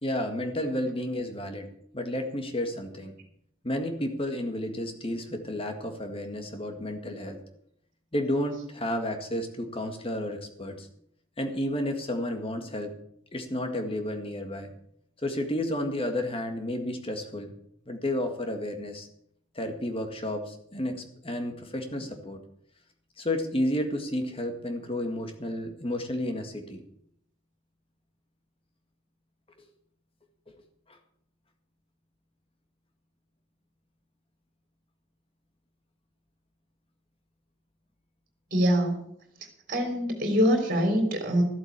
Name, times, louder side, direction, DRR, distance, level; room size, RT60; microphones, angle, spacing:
voice 1, 0.0-3.1 3.6-7.4 8.1-10.9 11.4-13.0 13.3-14.7 15.2-17.5 17.9-19.1 19.6-22.4 23.2-26.8, left 1 dB, 25° left, 5 dB, 1.8 m, -31 dB
voice 2, 38.5-38.9 39.7-41.4, equal, 40° right, 3 dB, 3.7 m, -24 dB
14.0 x 8.0 x 8.2 m, 0.71 s
head